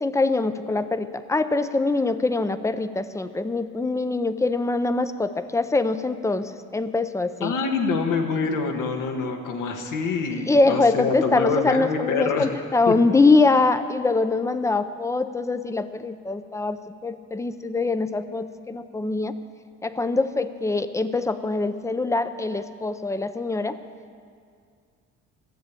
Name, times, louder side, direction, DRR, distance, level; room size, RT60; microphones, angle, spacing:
voice 1, 0.0-7.6 10.5-19.3 19.8-23.8, left 3 dB, 10° left, 12 dB, 0.5 m, -23 dB
voice 2, 7.4-12.5 12.9-13.0, left 4 dB, 80° left, 4 dB, 1.6 m, -25 dB
13.5 x 7.3 x 8.3 m, 2.2 s
cardioid pair, 105°, 31 cm